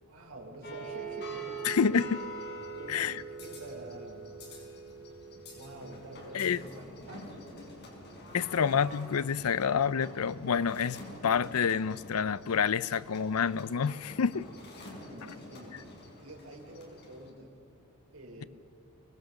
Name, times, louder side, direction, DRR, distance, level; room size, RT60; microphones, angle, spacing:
voice 1, 0.0-2.0 2.7-3.0 3.4-4.5 5.5-7.7 15.0-15.8 16.2-17.5 18.1-18.5, right 1 dB, 65° right, 3.7 m, -47 dB
sound 1, 0.6-17.3, right 2 dB, 50° left, 5.0 m, -45 dB
voice 2, 1.6-2.2 2.9-3.2 6.3-6.6 8.3-14.5, left 6 dB, 70° left, 0.5 m, -28 dB
24.5 x 19.5 x 6.5 m
head